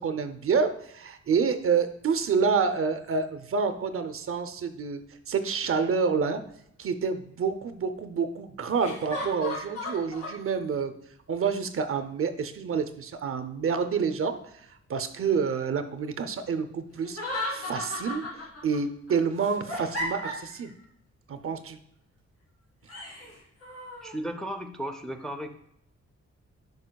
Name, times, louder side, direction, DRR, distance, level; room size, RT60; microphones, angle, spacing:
voice 1, 0.0-6.4 6.8-10.9 11.3-17.2 17.5-18.3 18.6-20.7 21.3-21.8, right 5 dB, 50° right, 9 dB, 0.6 m, -28 dB
sound 1, 5.6-5.7 8.8-10.4 17.0-18.8 19.1-20.7 22.9-24.1, left 1 dB, 55° left, 2.4 m, -35 dB
voice 2, 24.0-25.5, right 1 dB, ahead, 4 dB, 0.4 m, -35 dB
11.0 x 4.9 x 2.3 m, 0.74 s
wide cardioid pair, 155°, 29 cm